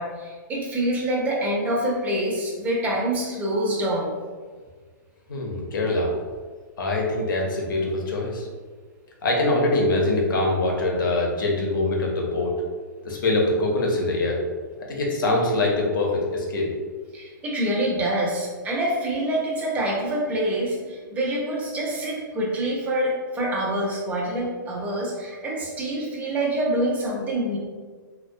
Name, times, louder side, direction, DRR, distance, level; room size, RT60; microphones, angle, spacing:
voice 1, 0.0-4.1 17.1-27.6, right 1 dB, 15° right, -3 dB, 0.5 m, -26 dB
voice 2, 5.3-6.1 6.8-8.5 9.2-12.5 13.0-14.4 14.9-16.7, left 2 dB, 80° left, 0 dB, 0.6 m, -23 dB
2.2 x 2.2 x 2.5 m, 1.5 s
hypercardioid pair, 145°, 11 cm